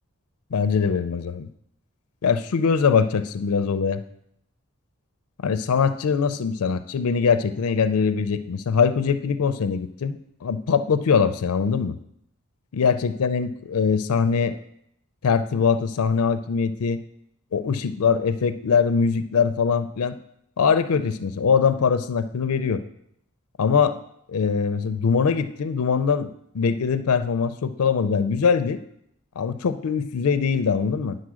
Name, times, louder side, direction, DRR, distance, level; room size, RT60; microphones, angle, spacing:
voice 1, 0.5-1.5 2.2-4.0 5.4-12.0 12.7-14.6 15.2-17.0 17.5-20.2 20.6-22.8 23.6-24.0 24.3-28.8 29.4-31.2, left 6 dB, 75° left, 11 dB, 0.4 m, -22 dB
9.7 x 4.1 x 6.2 m, 0.75 s
head